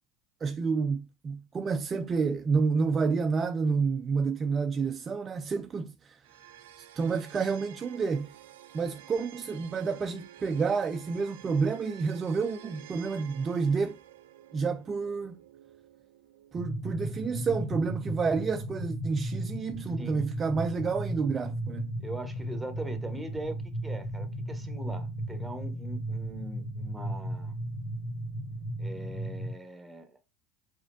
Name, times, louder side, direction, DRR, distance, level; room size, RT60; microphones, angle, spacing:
voice 1, 0.4-6.2 6.8-8.3 8.7-14.0 14.5-15.4 16.5-21.9, right 5 dB, 30° right, 0.3 m, -29 dB
sound 1, 6.2-17.3, right 12 dB, 80° right, 0.6 m, -52 dB
sound 2, 16.5-29.5, right 1 dB, 85° left, 2.9 m, -35 dB
voice 2, 22.0-27.5 28.8-30.2, right 2 dB, 5° right, 1.1 m, -41 dB
4.9 x 4.2 x 2.6 m
hypercardioid pair, 90°, 0 cm